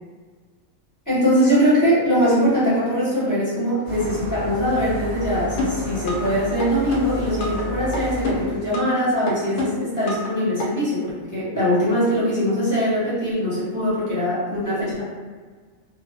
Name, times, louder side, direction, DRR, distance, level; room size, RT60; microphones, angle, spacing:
voice 1, 1.1-15.1, equal, 15° left, -11 dB, 0.9 m, -22 dB
sound 1, 3.8-8.6, equal, 55° right, 0.8 m, -32 dB
sound 2, 5.6-6.3 6.6-7.6 7.9-9.0 9.3-10.3 10.6-10.7, left 2 dB, 75° left, 0.9 m, -27 dB
2.4 x 2.0 x 2.7 m, 1.5 s
omnidirectional pair, 1.4 m